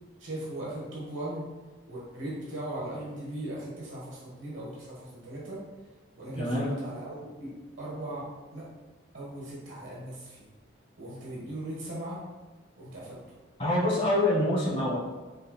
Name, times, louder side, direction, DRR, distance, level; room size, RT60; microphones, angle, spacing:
voice 1, 0.2-1.4 1.9-5.6 6.2-7.5 7.8-8.3 8.5-8.7 9.1-10.5 11.0-12.2 12.8-13.2, right 1 dB, 75° right, -6 dB, 1.3 m, -38 dB
voice 2, 6.3-6.8 13.6-15.0, left 1 dB, 30° left, -6 dB, 1.3 m, -26 dB
5.2 x 4.0 x 2.3 m, 1.3 s
head